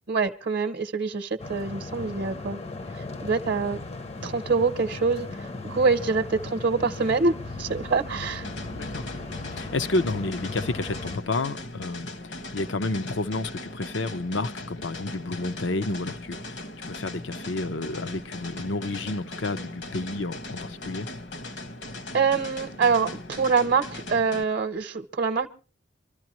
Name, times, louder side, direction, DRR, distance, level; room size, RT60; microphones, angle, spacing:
voice 1, 0.1-2.6 3.2-3.8 4.2-5.3 5.6-8.5 22.1-25.5, right 4 dB, 55° right, 0.8 m, -25 dB
sound 1, 1.4-11.2, left 2 dB, 35° left, 0.6 m, -37 dB
sound 2, 8.4-24.4, left 2 dB, 65° left, 1.2 m, -39 dB
voice 2, 8.7-9.1 9.5-12.1 12.5-16.6 16.9-21.1, left 2 dB, 80° left, 0.8 m, -30 dB
25.0 x 13.5 x 3.0 m
head